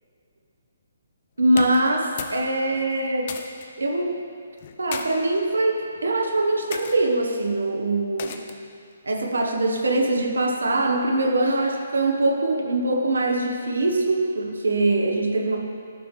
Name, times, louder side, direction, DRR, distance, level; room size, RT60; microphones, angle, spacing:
voice 1, 1.4-3.3 3.8-4.2 4.8-8.4 9.0-15.6, right 2 dB, 90° right, 2 dB, 1.1 m, -23 dB
sound 1, 1.5-2.4 2.7-3.7 4.6-5.1 5.8-6.1 6.7-7.0 8.2-8.7, left 7 dB, 45° left, 0.5 m, -35 dB
11.0 x 5.7 x 3.3 m, 2.5 s
hypercardioid pair, 145°, 0 cm